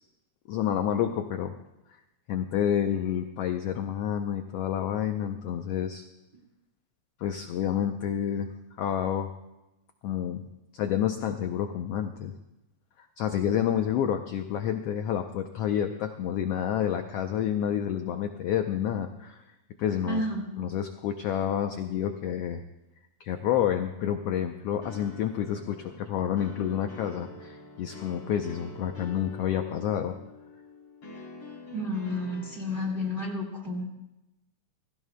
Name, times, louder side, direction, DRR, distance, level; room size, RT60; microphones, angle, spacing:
voice 1, 0.5-1.5 2.3-6.1 7.2-8.5 8.8-9.3 10.0-10.4 10.7-12.3 13.2-19.4 19.8-20.2 20.6-22.6 23.2-30.1, left 9 dB, 75° left, 6 dB, 1.5 m, -29 dB
voice 2, 20.0-20.4 31.7-33.8, left 1 dB, 20° right, 0 dB, 1.8 m, -31 dB
sound 1, 24.8-33.1, left 2 dB, 45° left, 4.6 m, -46 dB
28.5 x 16.5 x 2.3 m, 0.96 s
omnidirectional pair, 3.5 m